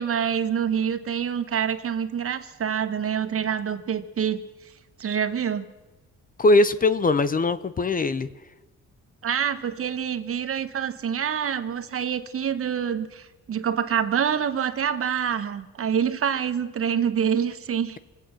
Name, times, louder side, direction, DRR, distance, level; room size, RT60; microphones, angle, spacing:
voice 1, 0.0-4.4 5.0-5.7 9.2-18.0, right 8 dB, 50° right, 10 dB, 1.1 m, -26 dB
voice 2, 6.4-8.3, left 2 dB, 30° left, 14 dB, 0.7 m, -20 dB
24.5 x 8.5 x 6.3 m, 1.1 s
cardioid pair, 90°, 30 cm